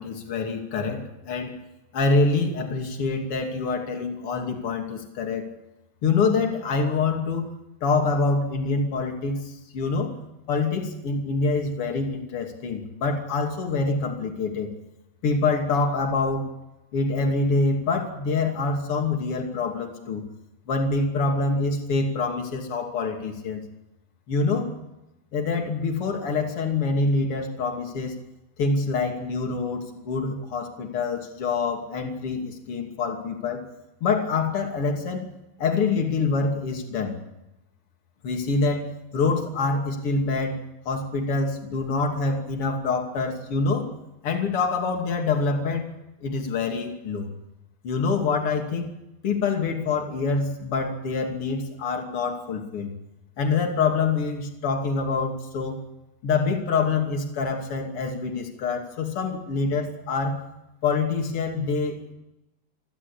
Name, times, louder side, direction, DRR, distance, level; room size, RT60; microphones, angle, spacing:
voice 1, 0.0-1.5 1.9-5.5 6.0-7.4 7.8-10.1 10.5-14.7 15.2-16.5 16.9-20.2 20.7-23.6 24.3-24.7 25.3-28.1 28.6-33.6 34.0-35.2 35.6-37.1 38.2-38.8 39.1-40.6 40.8-43.9 44.2-45.8 46.2-47.3 47.8-48.9 49.2-52.9 53.4-55.8 56.2-60.4 60.8-62.1, left 4 dB, 40° left, 2 dB, 3.3 m, -25 dB
28.0 x 12.5 x 8.7 m, 0.94 s
omnidirectional pair, 4.2 m